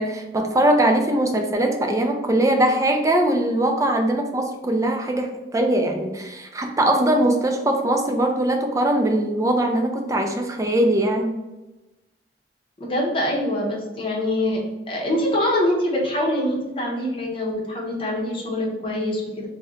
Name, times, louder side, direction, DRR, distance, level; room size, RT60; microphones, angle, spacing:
voice 1, 0.0-11.3, right 1 dB, 20° right, 3 dB, 0.3 m, -21 dB
voice 2, 12.8-14.6 14.9-19.5, left 1 dB, 30° left, -3 dB, 0.8 m, -24 dB
2.7 x 2.1 x 3.6 m, 1.0 s
head